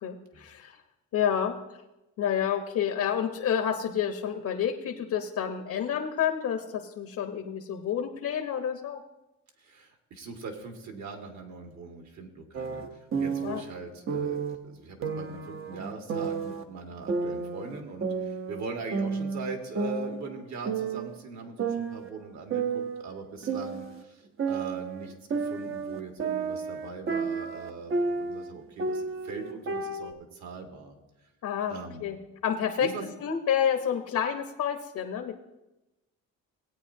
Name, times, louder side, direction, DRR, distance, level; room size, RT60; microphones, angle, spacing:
voice 1, 0.0-0.8 1.1-1.6 2.2-9.0 13.4-13.6 31.4-32.2 32.4-32.9 33.2-35.4, left 8 dB, 65° left, 4 dB, 1.0 m, -29 dB
voice 2, 9.6-30.9 31.7-32.0 32.8-33.1, right 4 dB, 60° right, 3 dB, 1.9 m, -41 dB
sound 1, 12.5-13.6 14.1-14.6 15.0-16.6 17.1-18.6 18.9-20.4 20.7-21.2 21.6-24.0 24.4-28.5 28.8-30.1, right 4 dB, 40° right, 0.8 m, -31 dB
18.0 x 9.0 x 2.8 m, 0.98 s
cardioid pair, 120°, 31 cm